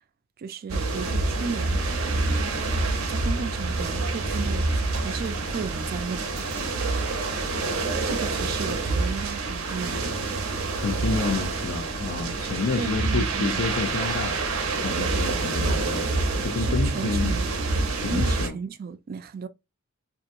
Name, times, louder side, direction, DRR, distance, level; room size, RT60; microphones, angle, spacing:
voice 1, 0.4-1.8 3.1-4.7 5.0-6.3 8.1-10.1 12.8-13.6 16.6-17.5 18.1-19.5, right 5 dB, 45° right, 0.3 m, -34 dB
sound 1, 0.7-18.5, right 3 dB, 90° right, 0.6 m, -27 dB
voice 2, 10.8-14.4 14.8-16.1 16.4-17.4 17.9-18.6, left 4 dB, 75° left, 0.4 m, -29 dB
2.8 x 2.2 x 2.5 m
head